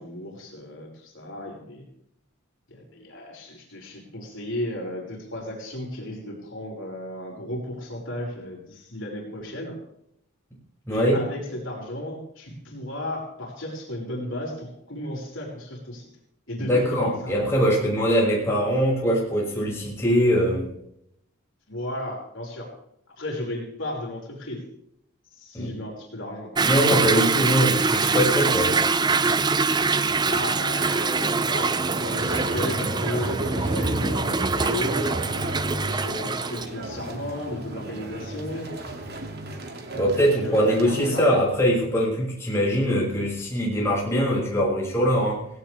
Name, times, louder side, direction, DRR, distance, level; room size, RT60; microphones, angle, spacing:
voice 1, 0.0-1.8 2.7-9.8 10.9-16.1 16.5-17.4 21.7-22.7 23.2-24.7 25.3-26.7 30.3-35.1 35.8-38.7 40.2-41.2, left 1 dB, 60° left, -1 dB, 5.5 m, -34 dB
voice 2, 10.9-11.2 16.6-20.6 25.5-25.7 26.6-28.8 39.9-45.4, equal, 15° left, -5 dB, 6.4 m, -22 dB
Toilet flush / Drip / Trickle dribble, 26.6-36.7, right 4 dB, 20° right, 0.5 m, -24 dB
sound 1, 31.9-41.2, right 1 dB, 50° right, 2.4 m, -33 dB
18.0 x 17.0 x 3.5 m, 0.76 s
head